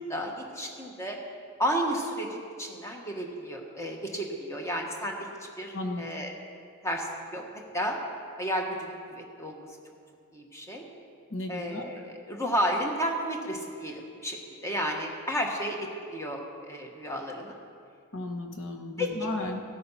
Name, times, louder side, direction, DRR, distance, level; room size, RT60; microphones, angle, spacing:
voice 1, 0.1-1.2 1.6-5.3 5.6-6.3 6.8-7.4 7.7-8.0 8.4-9.7 10.3-10.9 11.5-17.6 19.0-19.3, equal, 15° left, 1 dB, 1.4 m, -32 dB
voice 2, 5.7-6.1 11.3-11.9 18.1-19.6, left 2 dB, 60° left, 4 dB, 1.3 m, -34 dB
15.0 x 8.6 x 5.7 m, 2.3 s
head